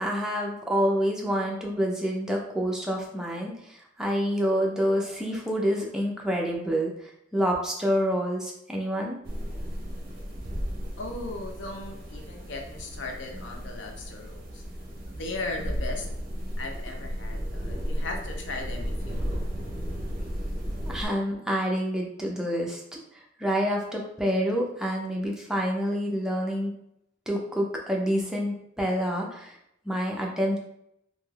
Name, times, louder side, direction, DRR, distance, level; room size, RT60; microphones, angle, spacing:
voice 1, 0.0-9.2 20.8-26.7 27.3-29.6 29.8-30.6, equal, 5° right, -2 dB, 0.5 m, -28 dB
sound 1, 9.2-21.1, equal, 50° right, 0.6 m, -34 dB
voice 2, 11.0-14.6 15.1-16.1 16.6-19.5, left 2 dB, 70° left, 2 dB, 0.6 m, -37 dB
3.2 x 2.6 x 2.3 m, 0.75 s
head